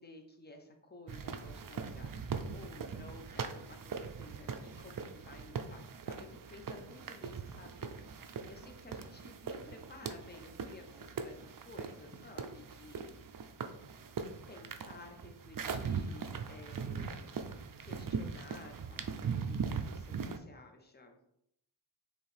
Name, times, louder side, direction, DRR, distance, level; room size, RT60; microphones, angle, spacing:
voice 1, 0.0-13.2 13.6-13.8 14.5-17.3 17.8-21.2, left 2 dB, 20° left, 4 dB, 0.7 m, -54 dB
sound 1, 1.1-20.4, right 5 dB, 45° right, 0.5 m, -41 dB
4.4 x 3.2 x 3.3 m, 0.75 s
wide cardioid pair, 50°, 49 cm